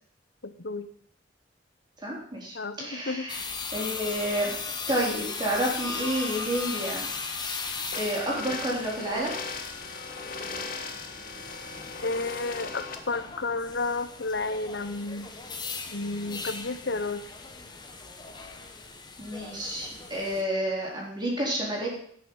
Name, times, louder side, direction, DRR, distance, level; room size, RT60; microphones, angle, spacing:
voice 1, 0.4-0.9 2.5-3.3 12.0-15.3 15.9-17.2, left 3 dB, 70° left, 12 dB, 0.9 m, -31 dB
voice 2, 2.0-3.5 3.7-4.5 4.9-7.1 8.0-9.3 19.2-21.9, right 1 dB, 25° right, -3 dB, 3.9 m, -30 dB
sound 1, 3.3-20.4, left 4 dB, 25° left, 1.3 m, -38 dB
sound 2, 7.9-12.9, left 4 dB, 50° left, 1.5 m, -38 dB
17.0 x 6.6 x 5.6 m, 0.62 s
head